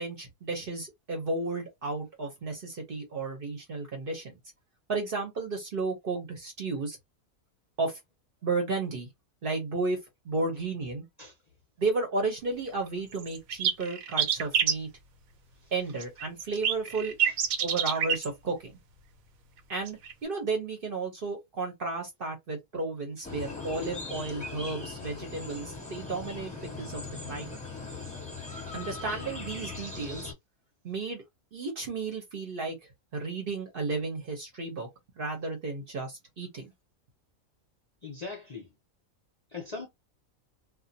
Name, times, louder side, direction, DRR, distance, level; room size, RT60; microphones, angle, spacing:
voice 1, 0.0-4.4 4.9-7.0 7.8-8.0 8.4-9.1 9.4-10.0 10.2-11.0 11.8-14.9 15.7-17.1 17.6-18.7 19.7-27.0 27.3-27.5 28.7-30.3 30.8-31.2 31.5-32.8 33.1-34.9 35.2-36.7, right 3 dB, 50° right, 0.8 m, -33 dB
sound 1, 12.9-13.0 13.2-14.7 16.0-18.3 19.7-20.1, right 8 dB, 80° right, 1.0 m, -27 dB
sound 2, 23.2-30.3, left 3 dB, 5° left, 0.8 m, -39 dB
voice 2, 38.0-38.7 39.5-39.9, left 4 dB, 45° left, 0.5 m, -40 dB
2.3 x 2.1 x 2.6 m
omnidirectional pair, 1.4 m